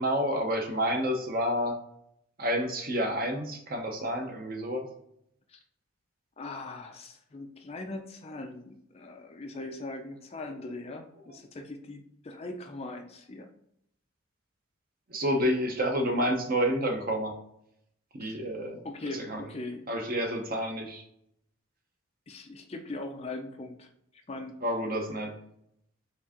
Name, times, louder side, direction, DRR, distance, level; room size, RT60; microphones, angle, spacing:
voice 1, 0.0-1.8 2.4-4.8 15.1-17.3 18.1-18.8 19.3-19.4 19.9-21.0 24.6-25.3, equal, 45° right, 3 dB, 0.8 m, -29 dB
voice 2, 6.4-13.5 18.2-18.4 18.8-19.9 22.3-24.6, left 2 dB, 30° left, 5 dB, 0.4 m, -40 dB
4.4 x 3.3 x 2.9 m, 0.75 s
head